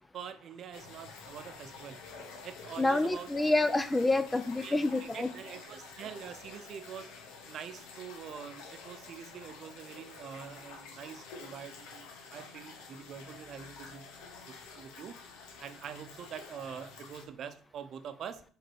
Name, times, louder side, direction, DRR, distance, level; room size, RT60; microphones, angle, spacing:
voice 1, 0.1-2.1 2.4-3.3 4.6-7.1 7.5-15.2 15.6-18.4, right 8 dB, 55° right, 10 dB, 0.7 m, -45 dB
sound 1, 0.7-17.3, left 4 dB, 85° left, 1.1 m, -49 dB
voice 2, 2.8-5.3, left 2 dB, 15° left, 12 dB, 0.5 m, -28 dB
5.0 x 4.3 x 4.6 m, 0.43 s
supercardioid pair, 95°, 0 cm